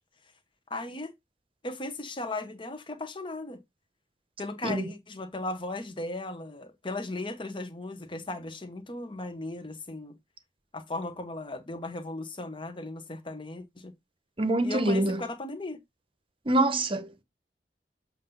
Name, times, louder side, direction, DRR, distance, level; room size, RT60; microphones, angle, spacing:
voice 1, 0.7-1.1 1.6-3.6 4.4-10.2 10.7-13.9 14.6-15.8, left 2 dB, 30° left, 1.0 m, -37 dB
voice 2, 14.4-15.2 16.5-17.2, right 1 dB, 30° right, 0.9 m, -25 dB
7.5 x 2.6 x 5.5 m
head